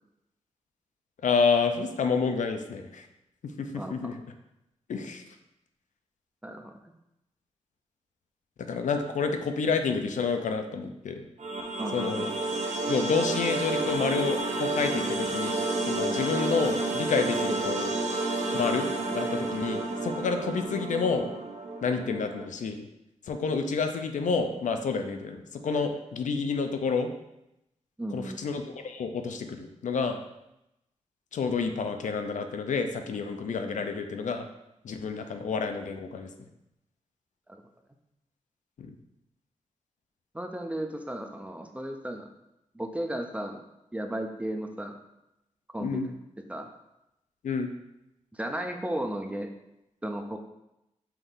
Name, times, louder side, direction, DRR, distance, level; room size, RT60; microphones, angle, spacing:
voice 1, 1.2-3.0 3.6-4.1 4.9-5.2 8.7-11.3 11.9-12.3 12.9-17.9 18.5-21.3 21.8-22.9 23.3-25.4 25.6-27.1 28.1-30.2 31.3-34.5 34.8-36.3 38.8-38.9 45.8-46.1 47.4-47.7, left 5 dB, 85° left, 6 dB, 0.5 m, -29 dB
voice 2, 3.7-4.1 6.4-6.7 11.8-12.3 28.0-28.4 37.5-37.6 40.3-42.3 42.7-43.6 43.9-45.0 45.7-46.0 46.5-46.7 48.3-49.5 50.0-50.4, right 1 dB, 10° right, 4 dB, 0.3 m, -34 dB
sound 1, 11.4-22.5, right 2 dB, 70° right, 0.6 m, -30 dB
5.6 x 2.6 x 3.5 m, 0.88 s
wide cardioid pair, 165°, 13 cm